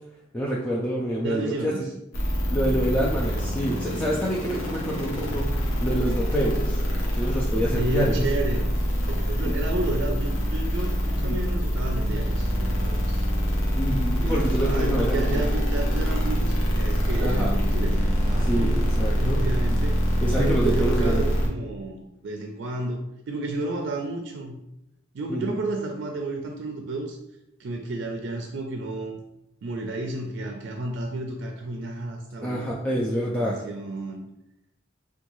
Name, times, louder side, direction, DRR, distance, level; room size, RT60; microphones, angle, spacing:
voice 1, 0.3-1.7 2.5-6.8 7.1-8.2 9.4-9.5 11.2-11.4 13.7-15.5 17.2-17.5 18.5-19.4 20.2-21.2 25.3-25.6 32.4-33.6, equal, 10° left, -5 dB, 0.3 m, -27 dB
voice 2, 1.2-1.9 4.8-5.1 7.7-8.7 9.1-13.3 14.2-18.8 19.2-20.0 20.3-23.0 23.3-24.6 25.1-27.2 27.6-29.2 29.6-33.0 33.3-34.2, right 2 dB, 65° right, 3 dB, 0.4 m, -32 dB
sound 1, 2.1-21.5, equal, 90° left, 0.8 m, -25 dB
3.5 x 2.3 x 3.0 m, 0.84 s
head